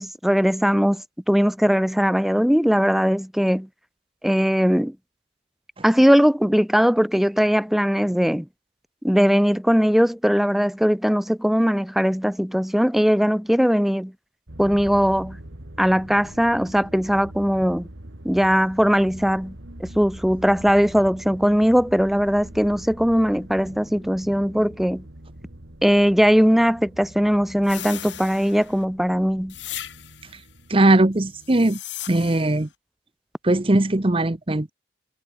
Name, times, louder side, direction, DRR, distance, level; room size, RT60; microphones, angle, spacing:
voice 1, 0.0-3.7 4.2-5.0 5.8-8.5 9.0-14.1 14.6-15.4 15.8-17.9 18.2-25.1 25.8-29.5, equal, ahead, 0.4 m, -20 dB
sound 1, 14.5-31.5, right 1 dB, 85° right, 2.7 m, -43 dB
sound 2, 27.6-28.8 29.5-30.4 31.3-32.6, left 12 dB, 80° left, 3.9 m, -37 dB
voice 2, 30.7-31.8 32.1-32.7 33.4-34.7, right 2 dB, 30° right, 0.9 m, -19 dB
head